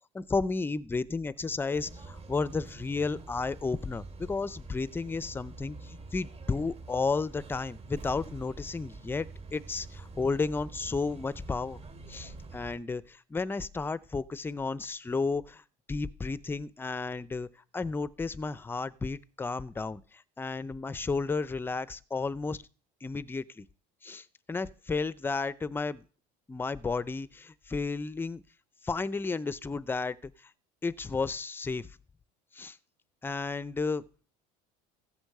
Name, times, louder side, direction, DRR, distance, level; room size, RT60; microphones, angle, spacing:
voice 1, 0.1-11.8 12.1-15.6 15.9-17.5 17.7-20.0 20.4-22.6 23.0-23.7 24.0-26.0 26.5-28.4 28.8-30.3 30.8-31.9 32.5-32.8 33.2-34.0, left 4 dB, 10° left, 0.5 m, -32 dB
sound 1, 1.7-12.8, right 3 dB, 35° right, 2.6 m, -46 dB
15.0 x 8.1 x 6.6 m
cardioid pair, 130°, 17 cm